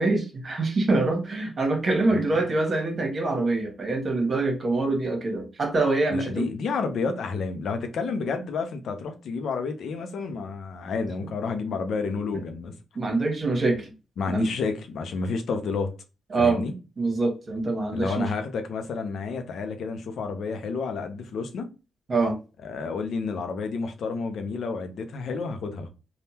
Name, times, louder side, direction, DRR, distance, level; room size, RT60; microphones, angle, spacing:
voice 1, 0.0-6.4 12.3-12.4 12.9-13.9 14.3-14.5 16.3-16.6 17.0-18.3 22.1-22.4, right 3 dB, 50° right, 1.2 m, -25 dB
voice 2, 2.1-2.4 6.1-12.7 14.2-15.9 16.4-16.7 17.9-21.7 22.6-25.9, left 4 dB, 75° left, 0.6 m, -30 dB
3.5 x 2.3 x 2.8 m
supercardioid pair, 55°, 0 cm